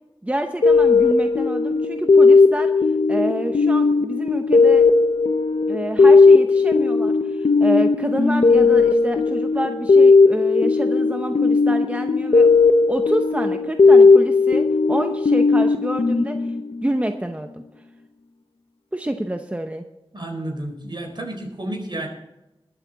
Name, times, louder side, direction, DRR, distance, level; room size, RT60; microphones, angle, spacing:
voice 1, 0.2-2.7 3.1-4.9 5.7-12.5 12.9-16.5 16.8-17.6 18.9-19.8, right 1 dB, 15° right, 6 dB, 0.8 m, -27 dB
sound 1, 0.6-17.0, left 4 dB, 90° left, 0.7 m, -16 dB
voice 2, 20.1-22.1, right 1 dB, 55° right, 2 dB, 4.3 m, -31 dB
21.0 x 8.4 x 4.1 m, 0.94 s
wide cardioid pair, 65°, 9 cm